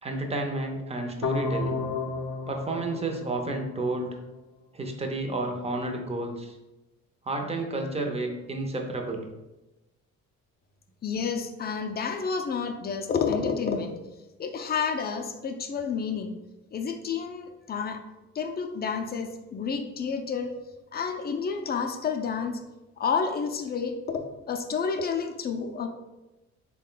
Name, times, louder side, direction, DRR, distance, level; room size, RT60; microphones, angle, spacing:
voice 1, 0.0-1.8 2.5-4.2 4.7-6.6 7.2-9.3, right 2 dB, 20° right, 3 dB, 0.6 m, -31 dB
sound 1, 1.2-4.2, left 5 dB, 90° left, 0.5 m, -32 dB
voice 2, 11.0-13.9 14.4-16.3 16.7-18.0 18.3-20.5 20.9-22.6 23.0-25.9, left 5 dB, 35° left, 5 dB, 0.4 m, -30 dB
3.6 x 2.2 x 3.8 m, 1.0 s
cardioid pair, 90°, 30 cm